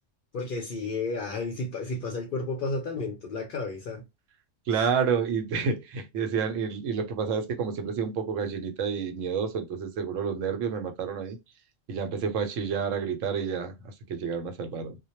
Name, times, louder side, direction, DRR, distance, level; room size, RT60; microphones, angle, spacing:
voice 1, 0.3-4.0 4.7-4.9, left 3 dB, 60° left, 0.5 m, -32 dB
voice 2, 4.7-11.4 11.9-13.7 14.1-14.9, right 6 dB, 85° right, 1.0 m, -29 dB
2.1 x 2.1 x 2.8 m
omnidirectional pair, 1.3 m